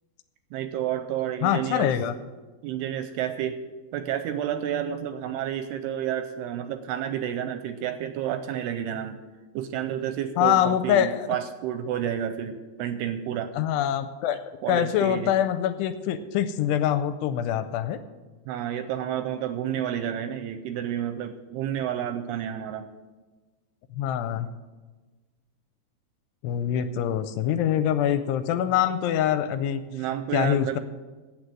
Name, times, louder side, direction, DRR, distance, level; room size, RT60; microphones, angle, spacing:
voice 1, 0.5-1.9 2.6-3.6 3.9-9.2 9.5-13.5 14.6-15.3 18.5-22.9 29.9-30.8, right 10 dB, 85° right, 10 dB, 2.4 m, -30 dB
voice 2, 1.4-2.1 10.4-11.3 13.5-18.0 24.0-24.5 26.4-29.8 30.3-30.8, left 10 dB, 80° left, 11 dB, 2.5 m, -24 dB
8.8 x 8.1 x 9.1 m, 1.3 s
omnidirectional pair, 5.0 m